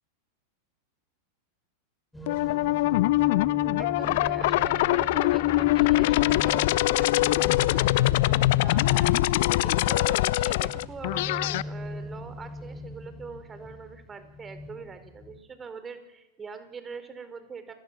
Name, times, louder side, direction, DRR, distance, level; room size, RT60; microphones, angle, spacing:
sound 1, 2.1-15.4, left 2 dB, 5° left, 6.3 m, -41 dB
sound 2, 2.3-11.6, left 18 dB, 55° left, 0.9 m, -23 dB
voice 1, 3.8-17.7, right 5 dB, 20° right, 10 dB, 4.9 m, -43 dB
29.5 x 25.0 x 7.7 m, 1.0 s
figure-of-eight pair, 90°, 0 cm